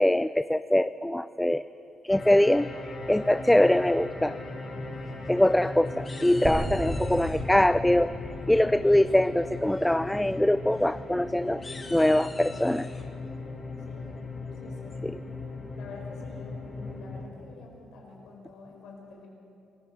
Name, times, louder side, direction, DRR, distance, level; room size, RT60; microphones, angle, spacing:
voice 1, 0.0-1.6 2.0-4.4 5.3-8.2 8.5-11.6 11.9-12.9 15.0-15.2, left 1 dB, 5° left, 14 dB, 0.4 m, -23 dB
sound 1, 2.1-17.2, left 3 dB, 45° left, 3.9 m, -39 dB
sound 2, 5.1-5.7 6.0-7.4 8.9-9.3 9.7-9.9 10.2-10.3 10.7-10.9 11.5-13.0, left 3 dB, 30° left, 2.4 m, -46 dB
sound 3, 6.4-10.5, right 1 dB, 40° right, 3.7 m, -36 dB
voice 2, 8.5-8.8 13.8-14.1 14.5-15.0 15.7-19.3, left 3 dB, 80° left, 1 dB, 5.0 m, -47 dB
26.5 x 15.5 x 7.1 m, 2.8 s
cardioid pair, 90°, 0 cm